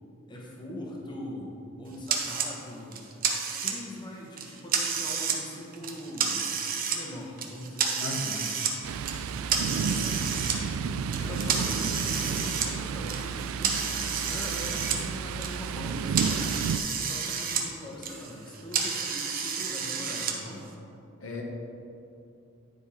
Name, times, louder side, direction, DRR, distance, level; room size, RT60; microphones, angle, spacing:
voice 1, 0.3-1.5 1.8-3.3 3.6-6.6 6.9-8.2 9.3-10.4 11.2-13.9 14.3-16.7 17.0-20.6, left 1 dB, 20° left, -3 dB, 1.0 m, -42 dB
sound 1, 2.1-2.5 2.9-4.0 4.4-5.4 5.7-7.0 7.4-8.7 9.1-10.6 11.1-15.0 15.3-17.6 17.9-20.3, right 6 dB, 45° right, 0.8 m, -30 dB
voice 2, 8.0-8.4 21.2-21.4, left 2 dB, 70° left, 0 dB, 1.1 m, -35 dB
Thunder, 8.8-16.8, right 6 dB, 90° right, 0.3 m, -32 dB
9.4 x 4.5 x 4.2 m, 2.6 s
head